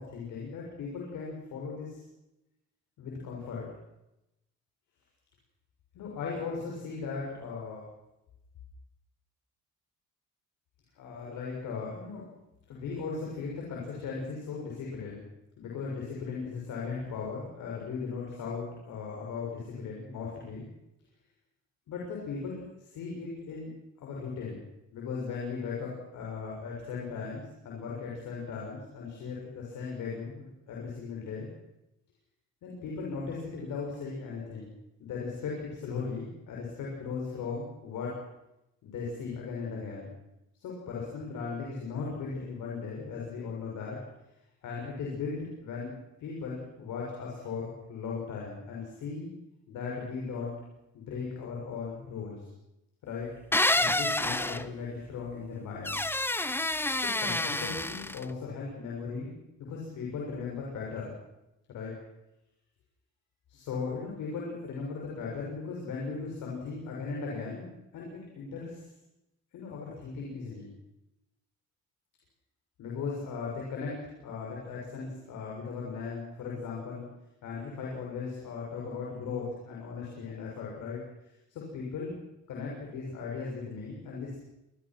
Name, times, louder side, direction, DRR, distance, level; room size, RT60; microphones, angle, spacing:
voice 1, 0.0-2.0 3.0-3.7 5.9-7.8 11.0-12.2 12.7-15.2 15.6-20.7 21.9-23.7 24.0-24.6 24.9-31.5 32.6-34.7 35.0-38.2 38.8-40.1 40.5-44.0 44.6-45.9 46.2-49.3 49.7-50.5 50.9-52.5 53.0-53.3 53.7-55.9 56.9-59.3 59.6-61.2 61.7-61.9 63.5-68.8 69.5-70.7 72.8-77.1 77.4-81.0 81.5-82.2 82.5-84.3, left 5 dB, 85° left, -3 dB, 6.6 m, -37 dB
sound 1, 53.5-54.6 55.8-58.2, left 1 dB, 5° left, 0.9 m, -28 dB
26.0 x 20.0 x 6.2 m, 0.90 s
cardioid pair, 90°, 30 cm